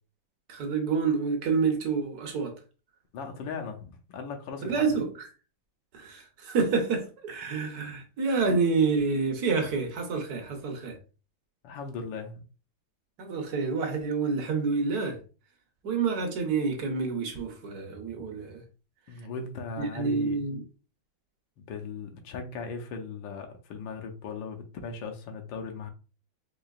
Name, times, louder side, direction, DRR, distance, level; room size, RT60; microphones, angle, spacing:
voice 1, 0.5-2.5 4.6-5.1 5.9-11.0 13.2-15.2 15.8-18.6 19.8-20.6, right 4 dB, 60° right, 1.1 m, -28 dB
voice 2, 3.1-4.9 11.6-12.4 19.1-20.4 21.6-25.9, left 4 dB, 85° left, 1.4 m, -38 dB
4.6 x 2.8 x 2.3 m
omnidirectional pair, 2.1 m